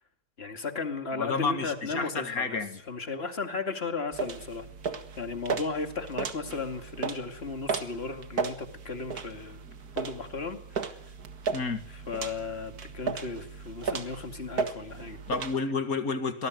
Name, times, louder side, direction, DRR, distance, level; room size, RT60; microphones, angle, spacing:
voice 1, 0.4-2.6 2.9-4.7 5.2-9.6 9.9-10.9 11.9-15.2, left 4 dB, 40° left, 7 dB, 2.5 m, -35 dB
voice 2, 1.1-2.8 11.5-11.8 15.3-16.5, left 4 dB, 65° left, 9 dB, 2.4 m, -30 dB
sound 1, 4.1-15.5, right 5 dB, 70° right, 2.2 m, -36 dB
25.0 x 19.5 x 9.2 m, 0.75 s
omnidirectional pair, 1.7 m